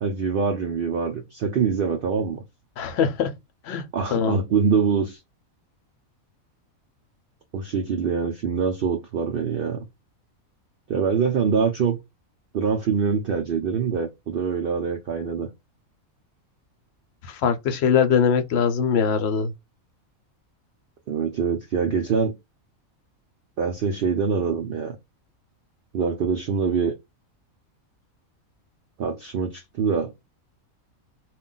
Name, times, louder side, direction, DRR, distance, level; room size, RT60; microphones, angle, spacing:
voice 1, 0.0-2.4 3.9-5.2 7.5-9.9 10.9-12.0 12.5-15.5 21.1-22.3 23.6-25.0 25.9-26.9 29.0-30.1, right 6 dB, 75° right, 0.5 m, -24 dB
voice 2, 2.8-3.3 3.6-4.4 17.2-19.5, left 7 dB, 65° left, 0.7 m, -22 dB
2.4 x 2.2 x 3.7 m
omnidirectional pair, 1.5 m